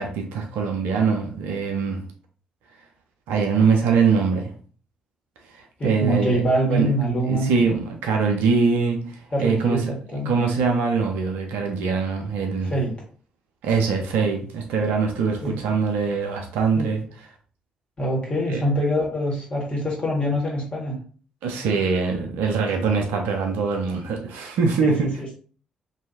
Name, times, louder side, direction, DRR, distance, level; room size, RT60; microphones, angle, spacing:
voice 1, 0.0-2.0 3.3-4.5 5.8-6.9 7.2-9.8 10.3-12.7 13.6-17.0 18.5-18.6 21.4-25.1, right 5 dB, 65° right, 0.5 m, -23 dB
voice 2, 5.8-7.5 9.3-10.3 12.6-13.0 15.4-15.6 16.7-16.9 18.0-21.0 24.8-25.4, equal, 30° left, 1.5 m, -24 dB
3.1 x 2.6 x 2.7 m
figure-of-eight pair, 40°, 4 cm